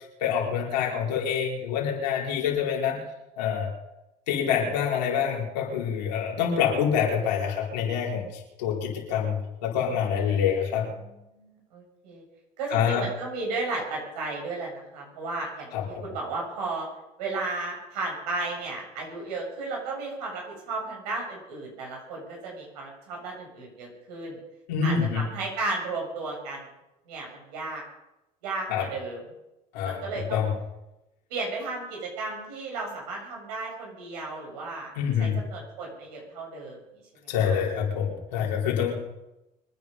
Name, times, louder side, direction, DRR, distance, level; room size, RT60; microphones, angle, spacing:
voice 1, 0.2-3.0 3.4-3.7 4.3-10.9 12.7-13.1 15.7-16.1 24.7-25.3 28.7-28.9 29.7-30.5 34.9-35.4 37.3-38.9, left 7 dB, 80° left, -2 dB, 4.8 m, -26 dB
voice 2, 11.3-12.2 12.6-16.9 17.2-24.4 24.8-26.6 27.1-27.8 28.4-29.2 29.8-30.4 31.3-34.9 35.2-36.8 37.4-37.6, right 3 dB, 75° right, -1 dB, 7.1 m, -34 dB
25.0 x 9.9 x 5.5 m, 0.94 s
hypercardioid pair, 65°, 21 cm